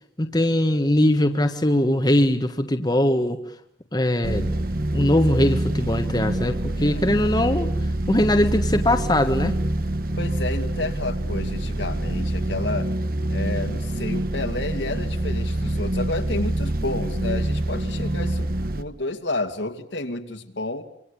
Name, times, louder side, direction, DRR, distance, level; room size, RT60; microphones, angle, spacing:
voice 1, 0.2-3.4 3.9-4.5 4.9-7.7 8.1-9.6, left 1 dB, 20° left, 5 dB, 1.6 m, -21 dB
sound 1, 4.2-18.8, right 1 dB, 50° right, 1.4 m, -26 dB
voice 2, 6.7-7.1 10.2-12.9 13.3-18.5 18.8-20.8, left 2 dB, 70° left, 5 dB, 2.7 m, -30 dB
27.0 x 25.5 x 8.6 m, 0.70 s
head